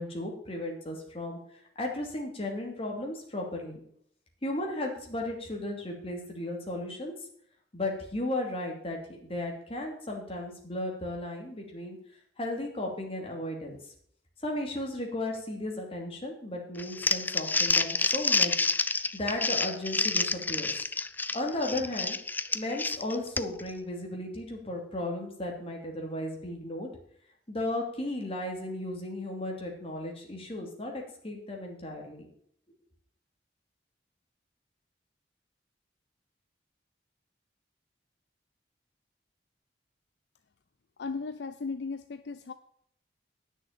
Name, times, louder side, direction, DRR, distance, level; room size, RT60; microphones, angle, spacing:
voice 1, 0.0-1.4 1.8-3.8 4.4-7.1 7.7-12.0 12.4-13.8 14.4-18.7 19.1-20.8 21.3-22.2 22.5-26.9 27.5-32.3, left 1 dB, 30° left, 0 dB, 2.7 m, -35 dB
Crumpling crinkling, 16.8-23.7, left 3 dB, 10° left, 0.4 m, -28 dB
voice 2, 41.0-42.5, left 4 dB, 65° left, 10 dB, 0.5 m, -36 dB
10.0 x 6.4 x 7.5 m, 0.65 s
head